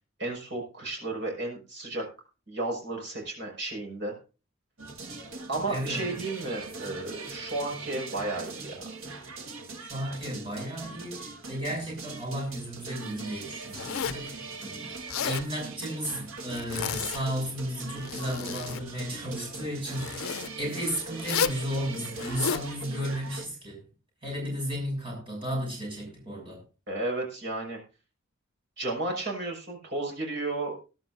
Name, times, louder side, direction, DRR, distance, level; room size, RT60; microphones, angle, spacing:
voice 1, 0.2-2.0 2.5-4.1 5.5-8.8 26.9-27.8 28.8-30.8, right 2 dB, 55° right, -1 dB, 5.6 m, -33 dB
sound 1, 4.8-23.5, right 3 dB, 85° right, 1.6 m, -41 dB
voice 2, 5.7-6.1 9.8-14.9 15.2-23.8 24.2-26.6, equal, 25° right, -2 dB, 6.8 m, -34 dB
Zipper (clothing), 13.7-14.3 14.9-15.5 16.5-17.2 17.8-18.8 19.9-20.5 21.2-21.6 22.1-22.7, left 7 dB, 90° left, 0.6 m, -32 dB
19.5 x 11.5 x 2.6 m, 0.33 s
head